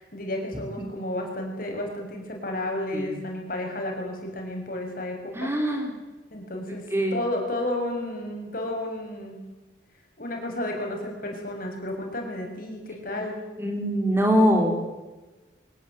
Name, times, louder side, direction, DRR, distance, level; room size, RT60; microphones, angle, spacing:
voice 1, 0.0-5.5 6.3-9.4 10.2-13.4, left 1 dB, 50° left, 1 dB, 7.2 m, -32 dB
voice 2, 5.3-5.9 6.9-7.2 13.6-14.9, equal, 15° right, 3 dB, 3.7 m, -23 dB
24.0 x 19.5 x 9.2 m, 1.2 s
head